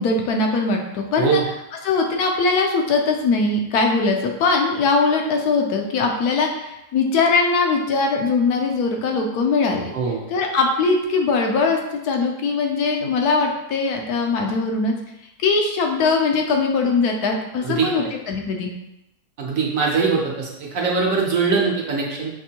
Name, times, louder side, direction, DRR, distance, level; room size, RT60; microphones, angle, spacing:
voice 1, 0.0-1.4 1.8-9.9 10.3-14.9 15.4-18.7, left 4 dB, 75° left, 2 dB, 1.1 m, -21 dB
voice 2, 9.9-10.3 17.6-18.0 19.4-22.3, right 5 dB, 65° right, -2 dB, 1.0 m, -22 dB
6.0 x 2.6 x 2.8 m, 0.89 s
omnidirectional pair, 1.7 m